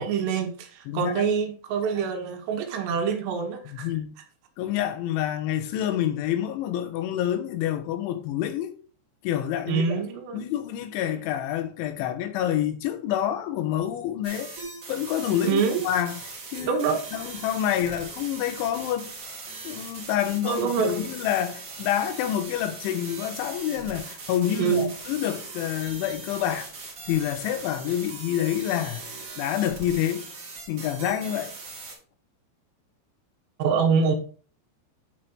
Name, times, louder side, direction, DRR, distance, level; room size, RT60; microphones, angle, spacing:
voice 1, 0.0-3.9 9.7-10.4 15.4-15.8 16.6-17.0 20.4-21.0 24.6-24.9 33.6-34.2, right 6 dB, 75° right, 3.0 m, -25 dB
voice 2, 0.9-1.3 3.7-4.2 4.6-8.7 9.2-10.0 10.3-14.5 14.9-16.2 16.5-16.8 17.1-19.1 19.7-26.7 27.1-29.0 29.4-30.3 30.7-31.5, left 11 dB, 90° left, 3.4 m, -27 dB
sound 1, 14.2-31.9, right 3 dB, 40° right, 1.9 m, -40 dB
9.4 x 5.0 x 4.4 m
omnidirectional pair, 5.3 m